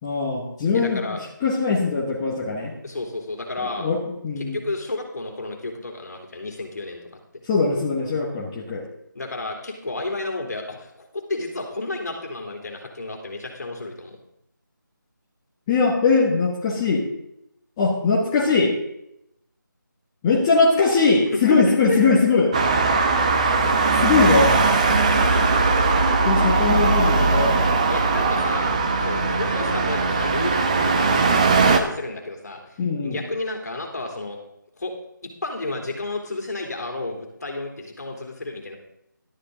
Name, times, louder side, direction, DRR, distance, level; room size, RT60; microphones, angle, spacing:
voice 1, 0.0-2.7 3.8-4.6 7.5-8.9 15.7-17.0 17.8-18.7 20.2-22.5 24.0-24.5 26.2-27.6 29.2-29.3 32.8-33.2, left 4 dB, 15° left, -5 dB, 1.2 m, -21 dB
voice 2, 0.7-1.2 2.8-3.9 4.4-7.0 9.1-14.2 21.5-22.2 27.9-28.7 29.0-34.4 34.8-34.9 35.2-38.8, left 2 dB, 55° left, 2 dB, 3.3 m, -31 dB
Traffic noise roadway noise, 22.5-31.8, right 3 dB, 20° right, 0.8 m, -19 dB
12.5 x 11.5 x 3.8 m, 0.79 s
figure-of-eight pair, 170°, 11 cm